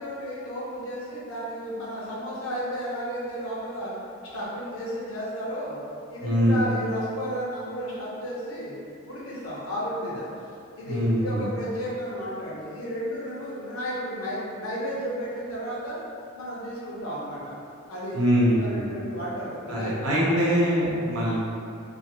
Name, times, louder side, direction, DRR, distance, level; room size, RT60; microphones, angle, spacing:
voice 1, 0.0-3.9 4.2-5.8 6.1-8.7 9.0-10.3 10.8-16.0 16.3-17.5 17.9-18.2 18.5-20.4, equal, 70° left, -7 dB, 0.7 m, -33 dB
voice 2, 6.2-6.6 10.9-11.4 18.1-18.9 19.7-21.4, equal, 80° right, -6 dB, 0.8 m, -23 dB
2.5 x 2.4 x 2.9 m, 2.4 s
head